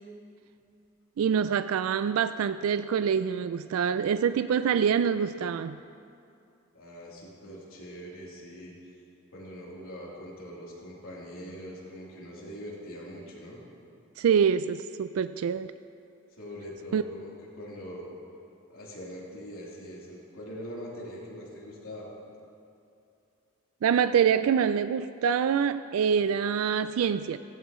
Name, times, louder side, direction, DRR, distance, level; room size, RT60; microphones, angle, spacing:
voice 1, 1.2-5.8 14.2-15.7 16.9-17.0 23.8-27.4, right 7 dB, 80° right, 12 dB, 0.3 m, -25 dB
voice 2, 6.7-8.9 9.3-13.6 16.3-18.1 18.7-22.1, equal, 75° left, -5 dB, 3.3 m, -42 dB
16.0 x 16.0 x 3.1 m, 2.6 s
head